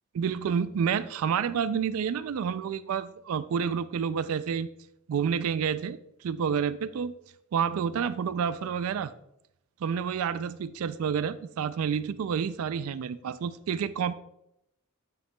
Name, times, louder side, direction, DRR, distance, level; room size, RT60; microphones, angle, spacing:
voice 1, 0.1-4.7 5.1-7.1 7.5-9.1 9.8-14.1, right 7 dB, 80° right, 15 dB, 0.3 m, -29 dB
9.0 x 7.0 x 2.3 m, 0.81 s
head